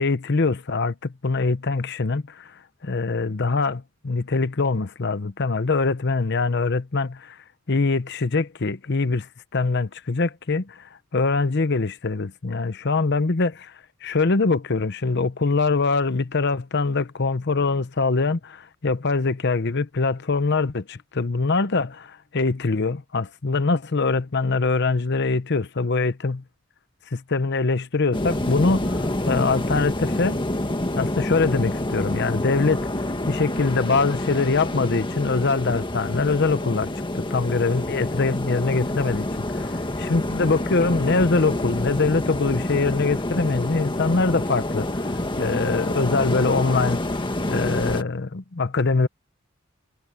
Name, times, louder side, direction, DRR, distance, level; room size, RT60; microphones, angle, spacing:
voice 1, 0.0-7.4 7.7-13.7 14.0-26.4 27.1-30.4 30.9-32.9 33.3-47.0 47.5-49.1, left 3 dB, 60° left, 0.8 m, -23 dB
sound 1, 28.1-48.0, left 1 dB, 25° left, 1.7 m, -27 dB
head